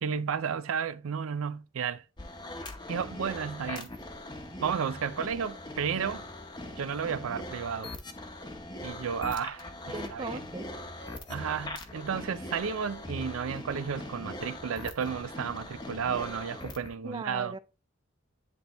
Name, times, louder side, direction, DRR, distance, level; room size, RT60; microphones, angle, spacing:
voice 1, 0.0-2.0 2.9-3.9 4.6-6.2 6.8-7.9 8.8-10.4 11.3-17.6, right 7 dB, 90° right, 0.4 m, -32 dB
sound 1, 2.2-16.9, left 1 dB, 20° left, 0.8 m, -41 dB
voice 2, 9.9-10.7 17.0-17.6, right 3 dB, 20° right, 0.3 m, -38 dB
10.5 x 3.4 x 3.0 m
head